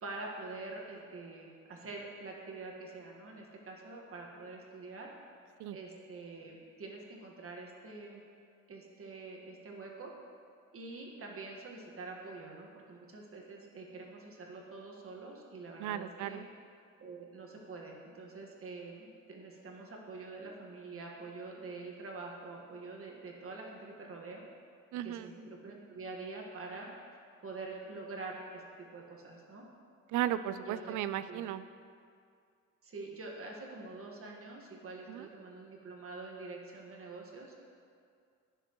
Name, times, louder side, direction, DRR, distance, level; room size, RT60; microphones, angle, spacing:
voice 1, 0.0-5.1 5.7-8.2 8.7-10.1 10.7-16.4 17.0-24.4 25.0-26.9 27.4-28.6 28.9-29.6 30.6-31.0 31.3-31.4 32.8-37.5, right 3 dB, 45° right, -1 dB, 1.6 m, -46 dB
voice 2, 15.8-16.4 24.9-25.3 30.1-31.6 35.1-35.3, right 11 dB, 80° right, 13 dB, 0.5 m, -35 dB
15.5 x 6.8 x 3.1 m, 2.3 s
cardioid pair, 90°, 30 cm